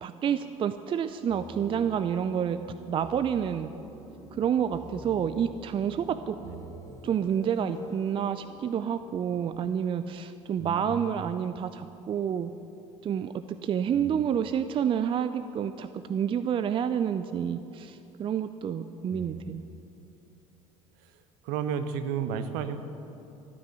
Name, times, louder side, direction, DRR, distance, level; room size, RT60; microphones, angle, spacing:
voice 1, 0.0-2.6 2.9-3.7 4.3-6.4 7.0-12.5 13.0-19.6, right 8 dB, 30° right, 12 dB, 0.5 m, -29 dB
sound 1, 1.3-8.1, equal, 20° left, 2.1 m, -48 dB
sound 2, 2.6-13.8, equal, 15° right, 4.4 m, -56 dB
voice 2, 6.4-6.7 10.6-11.2 13.9-14.2 19.1-19.5 21.4-22.8, right 7 dB, 60° right, 10 dB, 1.0 m, -33 dB
14.5 x 10.0 x 8.1 m, 2.8 s
figure-of-eight pair, 60°, 17 cm